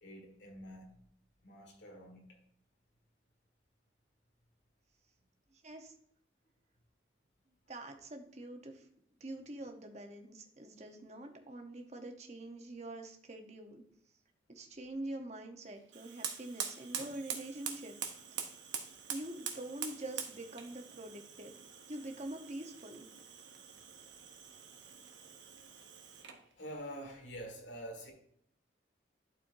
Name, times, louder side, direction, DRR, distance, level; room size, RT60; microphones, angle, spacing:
voice 1, 0.0-1.0 1.4-2.4 26.0-28.1, equal, 75° left, 0 dB, 1.9 m, -47 dB
voice 2, 5.5-5.9 7.7-8.9 9.2-13.8 14.5-18.0 19.1-21.6 21.9-23.1, right 1 dB, 40° right, 4 dB, 1.0 m, -45 dB
Fire, 15.9-26.5, right 7 dB, 90° right, 1.0 m, -45 dB
11.5 x 4.5 x 2.7 m, 0.68 s
head